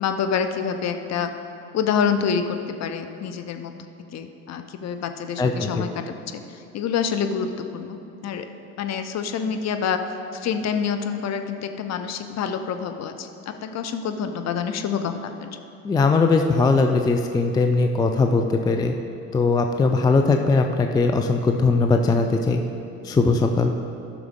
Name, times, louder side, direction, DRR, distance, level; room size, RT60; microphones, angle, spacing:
voice 1, 0.0-1.3 1.7-3.7 4.1-6.1 6.5-8.5 8.8-10.0 10.3-15.5, left 7 dB, 40° left, 7 dB, 0.8 m, -27 dB
voice 2, 5.4-5.8 15.8-18.9 19.3-22.6 23.0-23.7, left 3 dB, 10° left, 4 dB, 0.4 m, -20 dB
14.0 x 6.0 x 3.6 m, 2.7 s
figure-of-eight pair, 60°, 43 cm